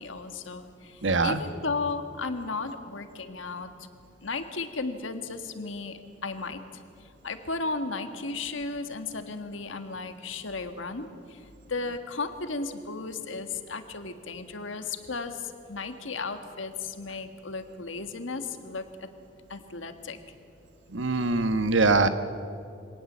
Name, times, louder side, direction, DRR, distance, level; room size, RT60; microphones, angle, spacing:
voice 1, 0.0-3.7 4.2-6.6 7.0-19.1 19.5-20.2, left 3 dB, 90° left, 8 dB, 1.7 m, -35 dB
voice 2, 1.0-1.4 20.9-22.1, right 3 dB, 80° right, 10 dB, 1.2 m, -23 dB
24.5 x 18.0 x 7.5 m, 2.5 s
head